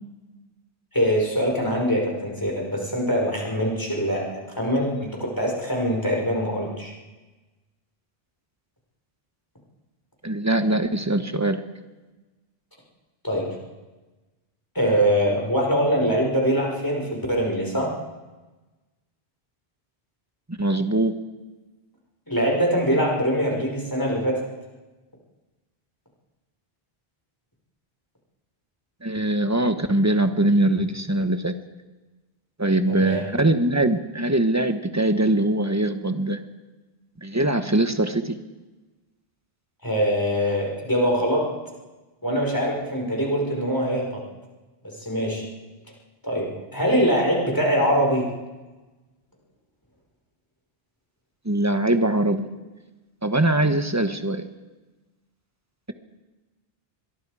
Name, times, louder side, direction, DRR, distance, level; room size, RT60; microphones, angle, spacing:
voice 1, 0.9-6.9 13.2-13.6 14.7-17.9 22.3-24.4 32.9-33.3 39.8-41.5 42.2-44.2 44.8-45.4 46.2-48.3, equal, 20° left, -2 dB, 5.0 m, -23 dB
voice 2, 10.2-11.6 20.5-21.1 29.0-31.6 32.6-36.4 37.2-38.4 51.4-52.4 53.2-54.5, right 1 dB, 15° right, 8 dB, 1.2 m, -22 dB
24.5 x 22.0 x 4.9 m, 1.2 s
omnidirectional pair, 1.0 m